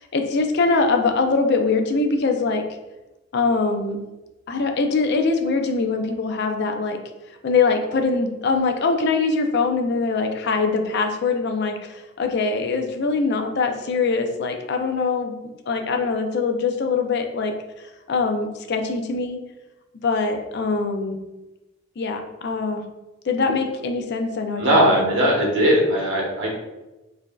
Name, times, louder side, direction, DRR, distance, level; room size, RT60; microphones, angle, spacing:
voice 1, 0.0-2.6 3.3-4.0 4.5-7.0 7.4-15.4 15.7-19.4 20.0-21.2 22.0-22.8 23.2-25.3, left 4 dB, 55° left, 5 dB, 0.5 m, -23 dB
voice 2, 24.6-26.5, equal, 65° right, -2 dB, 1.1 m, -19 dB
5.1 x 2.7 x 2.3 m, 1.0 s
head